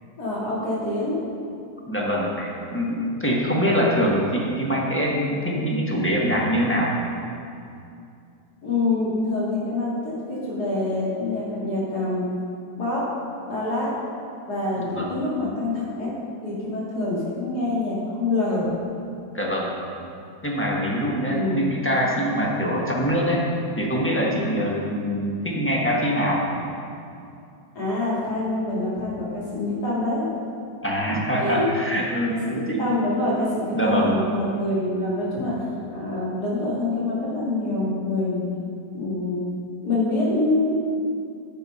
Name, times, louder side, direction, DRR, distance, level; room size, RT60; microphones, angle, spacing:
voice 1, 0.2-1.2 8.6-12.3 12.8-13.0 13.5-13.9 14.5-16.1 16.4-18.7 21.3-21.6 27.7-30.2 31.4-31.7 32.3-35.5 35.9-38.5 38.9-39.4 39.8-40.7, left 2 dB, 60° left, -8 dB, 3.2 m, -25 dB
voice 2, 1.9-7.0 14.8-15.2 19.3-19.7 20.4-23.5 23.8-26.5 30.8-32.9 33.7-34.1, equal, 10° left, -3 dB, 1.1 m, -24 dB
9.1 x 7.0 x 5.4 m, 2.5 s
omnidirectional pair, 1.9 m